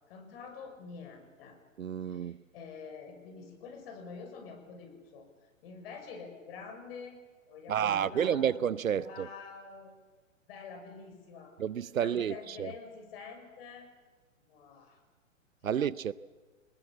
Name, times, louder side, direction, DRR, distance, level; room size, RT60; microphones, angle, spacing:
voice 1, 0.1-1.6 2.0-5.3 5.6-7.2 7.5-8.5 9.0-10.0 10.5-11.6 12.0-13.9 14.5-15.0 15.6-15.8, left 5 dB, 45° left, 6.2 m, -47 dB
voice 2, 1.8-2.4 7.7-9.3 11.6-12.7 15.6-16.1, right 8 dB, 80° right, 0.8 m, -30 dB
28.5 x 20.5 x 7.4 m
hypercardioid pair, 125°, 40 cm